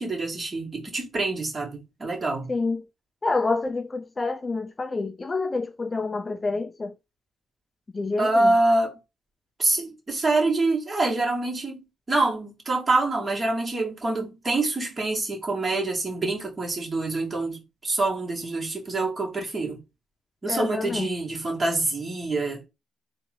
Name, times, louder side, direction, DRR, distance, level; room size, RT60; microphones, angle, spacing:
voice 1, 0.0-2.5 8.2-8.9 9.6-19.8 20.4-22.7, right 2 dB, 30° right, 2.4 m, -26 dB
voice 2, 2.5-2.8 3.2-6.9 7.9-8.5 20.5-21.1, left 3 dB, 25° left, 0.4 m, -28 dB
3.9 x 2.9 x 4.6 m
cardioid pair, 90°, 0 cm